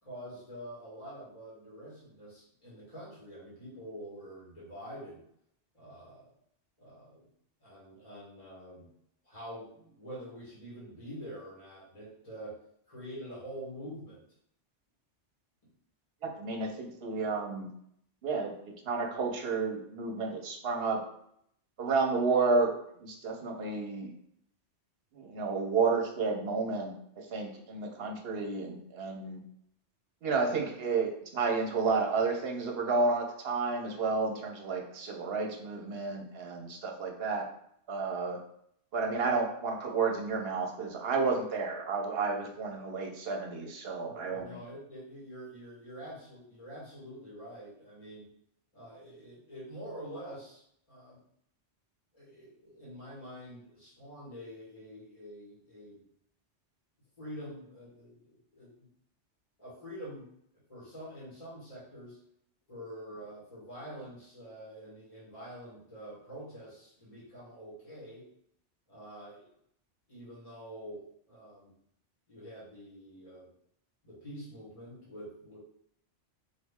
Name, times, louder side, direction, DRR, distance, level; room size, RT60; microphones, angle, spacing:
voice 1, 0.0-5.2 5.7-6.3 6.8-7.3 7.6-8.9 9.2-12.6 12.9-14.2 44.0-48.3 48.7-50.6 50.9-51.2 52.1-56.0 57.2-58.9 59.6-60.3 60.7-62.2 62.7-68.2 68.9-69.5 70.1-71.7 72.3-73.5 74.0-75.6, equal, 30° left, -8 dB, 1.9 m, -46 dB
voice 2, 16.2-17.7 18.2-21.0 21.8-22.7 23.0-24.1 25.1-29.4 30.2-37.5 37.9-38.4 38.9-44.5, right 4 dB, 60° right, 2 dB, 1.0 m, -31 dB
4.2 x 3.1 x 3.5 m, 0.70 s
omnidirectional pair, 1.2 m